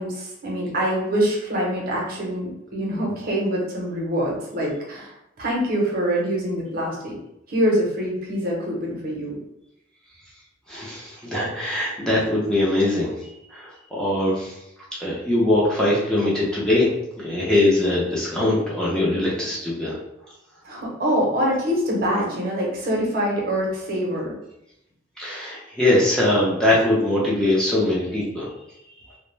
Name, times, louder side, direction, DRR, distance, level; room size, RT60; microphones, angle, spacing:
voice 1, 0.0-7.2 7.5-9.3 20.6-24.3, equal, 50° right, -3 dB, 0.7 m, -25 dB
voice 2, 10.7-13.1 13.5-14.6 15.0-16.9 17.2-20.0 25.2-28.5, left 1 dB, 5° left, -7 dB, 0.5 m, -22 dB
2.3 x 2.1 x 3.0 m, 0.83 s
head